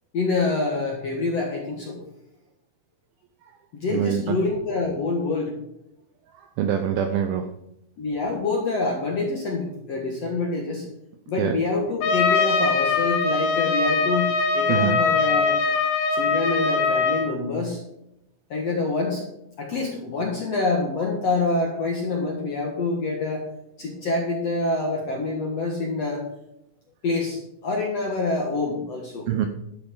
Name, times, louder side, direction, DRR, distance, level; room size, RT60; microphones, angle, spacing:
voice 1, 0.1-2.0 3.7-5.6 8.0-10.9 11.3-15.6 16.1-17.8 18.5-19.3 19.6-23.5 23.8-26.2 27.0-29.3, left 3 dB, 60° left, -1 dB, 1.7 m, -26 dB
voice 2, 3.9-4.4 6.6-7.5 11.4-11.5 14.7-15.0 29.3-29.5, right 9 dB, 80° right, 7 dB, 2.2 m, -24 dB
Trumpet, 12.0-17.3, left 4 dB, 80° left, 3.4 m, -22 dB
12.0 x 11.5 x 3.8 m, 0.83 s
omnidirectional pair, 5.1 m